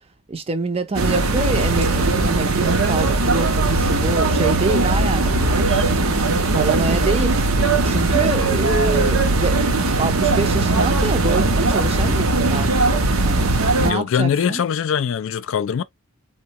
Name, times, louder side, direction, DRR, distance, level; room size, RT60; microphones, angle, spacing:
voice 1, 0.3-6.2 6.5-7.4 7.8-12.7 13.2-13.5 13.8-14.6, right 3 dB, 25° right, 0.5 m, -26 dB
sound 1, 0.9-13.9, right 2 dB, 65° right, 0.6 m, -19 dB
voice 2, 13.8-15.8, left 7 dB, 60° left, 0.3 m, -22 dB
3.5 x 2.1 x 2.8 m
head